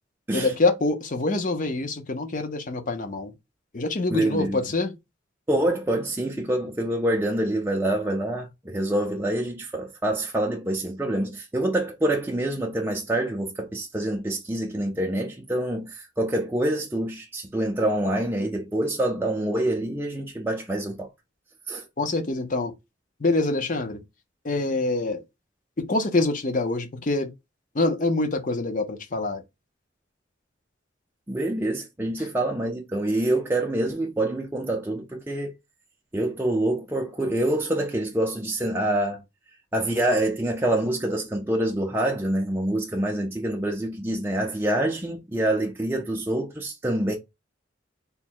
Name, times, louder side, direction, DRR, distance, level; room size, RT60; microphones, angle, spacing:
voice 1, 0.3-3.3 3.7-4.9 22.0-22.7 23.2-24.0 24.4-25.2 25.8-27.3 27.7-29.4 32.2-32.3, left 2 dB, 40° left, 0.6 m, -25 dB
voice 2, 4.1-4.6 5.5-21.1 21.7-21.8 31.3-35.5 36.1-39.2 39.7-47.2, right 1 dB, 10° right, 0.4 m, -26 dB
3.5 x 2.1 x 4.4 m
head